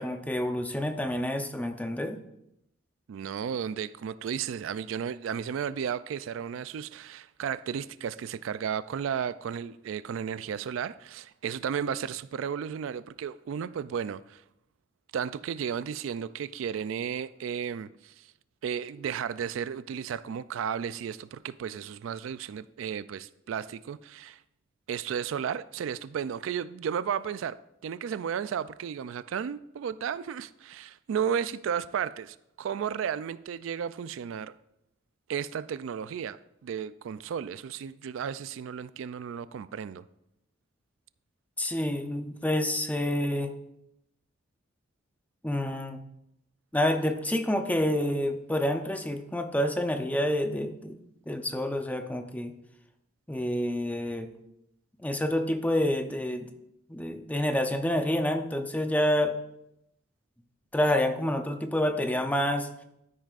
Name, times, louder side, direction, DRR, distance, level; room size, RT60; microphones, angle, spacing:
voice 1, 0.0-2.2 41.6-43.5 45.4-46.0 46.7-52.5 53.3-54.3 55.0-56.5 56.9-59.3 60.7-62.7, left 1 dB, 10° left, 0.6 m, -28 dB
voice 2, 3.1-14.4 15.1-18.3 18.6-24.4 24.9-27.6 27.8-34.5 35.3-40.0, right 7 dB, 70° right, 0.3 m, -34 dB
12.5 x 10.0 x 2.5 m
head